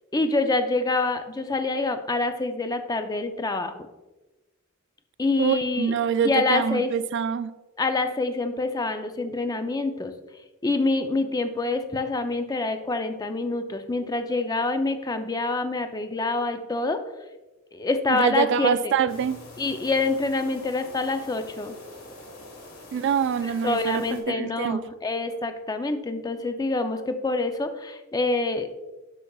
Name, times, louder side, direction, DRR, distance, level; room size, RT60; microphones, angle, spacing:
voice 1, 0.1-3.8 5.2-5.9 6.2-6.9 7.8-10.1 10.6-17.0 17.7-18.9 19.6-21.7 23.4-28.7, left 3 dB, 20° left, 8 dB, 0.5 m, -26 dB
voice 2, 5.4-7.5 18.1-19.4 22.9-24.8, right 7 dB, 60° right, 14 dB, 0.3 m, -25 dB
sound 1, 19.1-24.2, left 2 dB, 80° left, 1.6 m, -45 dB
8.2 x 6.7 x 2.3 m, 1.1 s
head